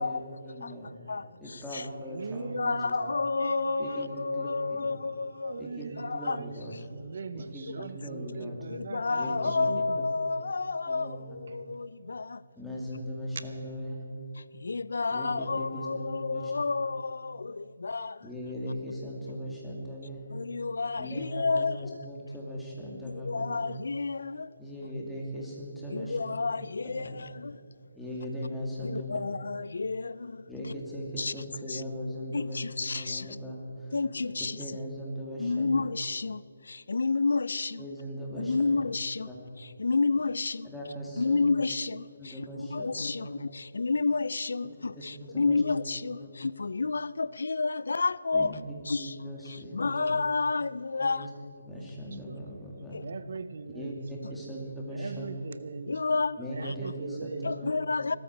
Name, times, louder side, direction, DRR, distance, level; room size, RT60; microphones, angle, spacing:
voice 1, 0.0-0.9 1.4-3.0 3.8-4.9 5.6-6.7 7.3-8.6 9.1-9.7 10.0-10.1 10.9-11.2 12.5-14.0 15.1-16.5 18.2-20.2 20.9-23.6 24.6-26.2 26.8-27.1 27.9-29.1 30.5-33.9 34.6-35.7 37.8-38.6 39.2-39.4 40.6-41.4 42.2-43.3 45.0-45.6 46.2-46.3 48.3-48.5 49.0-50.1 51.0-51.3 51.6-53.0 53.7-55.3 56.4-57.7, equal, 5° left, 2.4 m, -39 dB
voice 2, 0.6-1.9 2.4-5.7 6.0-6.4 7.4-7.8 8.7-12.4 14.4-18.3 20.3-22.1 23.0-24.5 25.9-27.6 28.8-30.5 31.2-31.3 31.7-31.8 32.3-33.4 33.9-34.6 35.4-37.8 38.4-39.3 39.6-40.7 41.2-48.5 48.9-51.5 52.9-53.0 55.9-56.7 57.4-58.2, left 4 dB, 75° left, 0.4 m, -30 dB
voice 3, 2.1-4.4 5.1-6.5 6.9-10.0 52.3-52.4 53.0-54.0 54.2-54.4 54.9-56.2 56.5-57.5, right 4 dB, 55° right, 0.7 m, -40 dB
20.5 x 13.0 x 4.6 m
hypercardioid pair, 160°, 0 cm